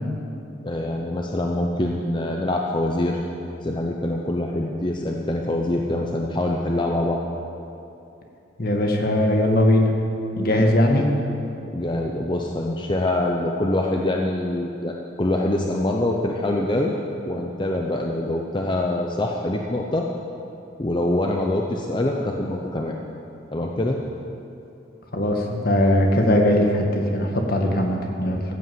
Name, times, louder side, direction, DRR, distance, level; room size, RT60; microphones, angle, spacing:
voice 1, 0.6-3.2 3.6-7.2 10.6-10.7 11.7-16.9 17.2-20.1 20.8-22.9 23.5-24.0, left 1 dB, 25° left, 0 dB, 0.7 m, -24 dB
voice 2, 8.6-9.9 10.4-11.1 25.1-28.4, left 1 dB, 50° left, 2 dB, 1.7 m, -20 dB
15.0 x 8.4 x 7.8 m, 2.7 s
head